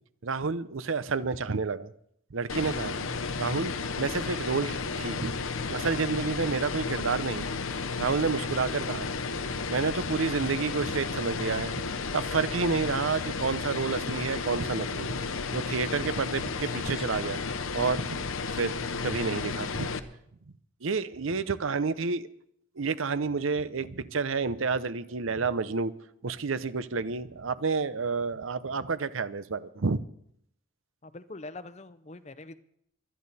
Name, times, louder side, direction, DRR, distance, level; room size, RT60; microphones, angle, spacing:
voice 1, 0.2-1.9 2.3-3.0 3.4-5.3 5.7-7.4 8.0-9.1 9.7-11.8 12.1-15.1 15.5-17.4 17.7-18.2 18.5-18.8 19.0-19.9 20.8-22.3 22.8-25.9 26.2-30.0, right 4 dB, 75° right, 15 dB, 0.7 m, -29 dB
sound 1, 2.5-20.0, left 4 dB, 80° left, 0.9 m, -33 dB
voice 2, 31.0-32.6, left 2 dB, 30° left, 13 dB, 0.7 m, -44 dB
23.0 x 10.5 x 4.2 m, 0.71 s
head